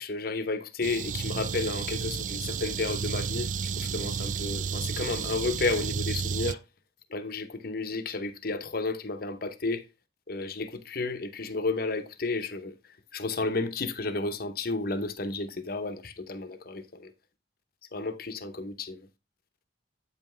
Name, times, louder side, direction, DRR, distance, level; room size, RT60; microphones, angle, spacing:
voice 1, 0.0-6.6 7.1-9.9 10.3-12.7 13.1-17.1 17.9-19.1, left 3 dB, 50° left, 0.8 m, -32 dB
sound 1, 0.8-6.6, right 6 dB, 45° right, 0.3 m, -32 dB
8.2 x 5.5 x 3.2 m
head